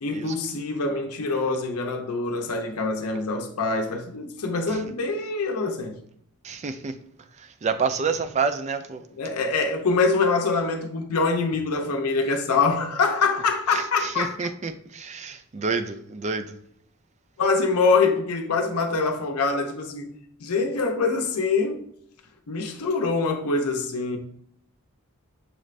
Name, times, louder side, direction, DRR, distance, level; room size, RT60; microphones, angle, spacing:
voice 1, 0.0-6.0 9.2-14.5 17.4-21.8 22.5-24.2, left 4 dB, 85° left, 0.6 m, -24 dB
voice 2, 6.4-6.9 7.6-9.0 14.2-16.4, right 5 dB, 30° right, 0.3 m, -28 dB
6.3 x 2.5 x 3.2 m
head